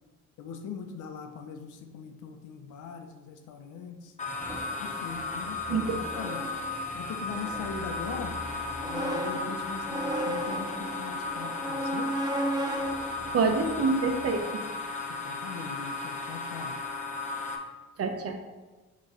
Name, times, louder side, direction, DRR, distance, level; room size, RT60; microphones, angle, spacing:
voice 1, 0.4-4.1 4.8-6.4 6.9-8.4 8.8-12.1 15.1-16.8, left 5 dB, 75° left, 6 dB, 0.8 m, -40 dB
sound 1, 4.2-17.6, left 3 dB, 25° left, 0.9 m, -35 dB
sound 2, 4.4-14.4, right 1 dB, 15° right, 0.7 m, -36 dB
voice 2, 13.3-14.6 18.0-18.3, right 4 dB, 50° right, 5 dB, 0.9 m, -26 dB
6.6 x 3.1 x 5.0 m, 1.2 s
cardioid pair, 90°, 30 cm